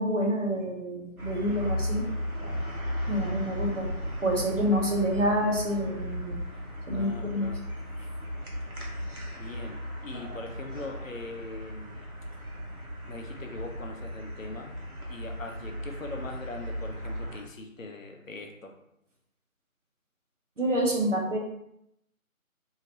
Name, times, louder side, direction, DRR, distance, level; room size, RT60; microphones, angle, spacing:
voice 1, 0.0-2.1 3.1-3.9 4.2-6.4 6.9-7.5 20.6-21.4, equal, 60° right, -1 dB, 1.0 m, -27 dB
sound 1, 1.2-17.4, equal, 90° right, 1.1 m, -36 dB
voice 2, 6.9-7.6 9.4-12.1 13.1-14.8 15.1-18.8, left 2 dB, 65° left, 3 dB, 0.7 m, -41 dB
2.8 x 2.8 x 3.0 m, 0.79 s
figure-of-eight pair, 165°, 42 cm